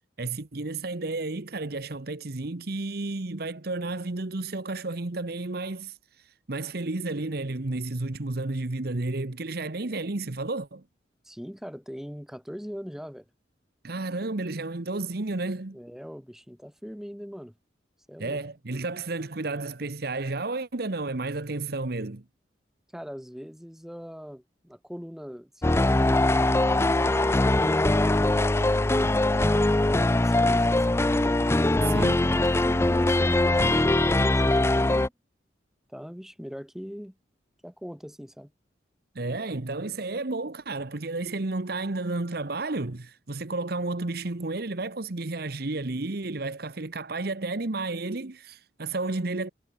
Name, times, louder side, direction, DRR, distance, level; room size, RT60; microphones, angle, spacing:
voice 1, 0.2-6.0 6.5-10.8 13.8-15.8 18.2-22.2 31.9-32.3 39.1-49.5, right 2 dB, 55° right, 1.1 m, -32 dB
voice 2, 11.2-13.3 15.7-17.5 18.1-18.4 22.9-29.5 29.8-31.0 31.8-35.1 35.9-37.2 37.6-38.5, equal, ahead, 2.6 m, -41 dB
sound 1, 25.6-35.1, left 2 dB, 15° left, 0.4 m, -22 dB
head